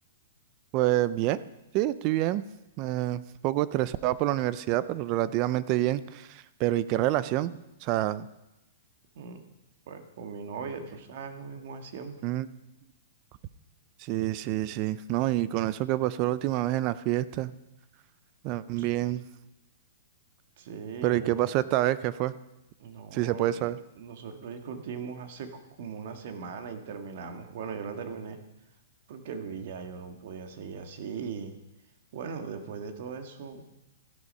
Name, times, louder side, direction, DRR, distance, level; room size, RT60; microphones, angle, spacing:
voice 1, 0.7-1.4 1.7-2.4 2.8-7.5 7.8-8.3 12.2-12.5 14.0-17.5 18.4-19.2 21.0-22.3 23.1-23.8, right 15 dB, 30° right, 17 dB, 0.5 m, -27 dB
voice 2, 9.9-12.2 18.8-18.9 20.6-21.4 22.8-28.4 29.1-31.5 32.1-33.6, right 6 dB, 50° right, 6 dB, 1.7 m, -39 dB
14.0 x 11.5 x 5.5 m, 0.95 s
hypercardioid pair, 165°, 0 cm